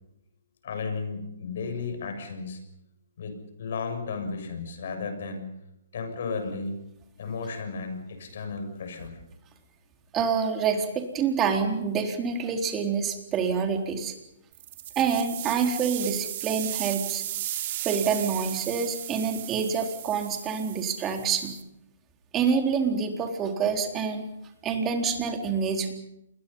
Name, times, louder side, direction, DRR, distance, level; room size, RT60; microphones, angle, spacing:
voice 1, 0.6-2.6 3.2-5.5 5.9-6.8 7.2-9.2, left 4 dB, 65° left, 7 dB, 7.2 m, -34 dB
voice 2, 10.1-14.1 15.0-17.2 17.8-21.5 22.3-24.3 24.6-25.9, right 6 dB, 20° right, 3 dB, 4.1 m, -27 dB
sound 1, 14.5-21.6, right 13 dB, 45° right, 3.0 m, -35 dB
29.0 x 22.0 x 5.7 m, 0.85 s
hypercardioid pair, 140°, 0 cm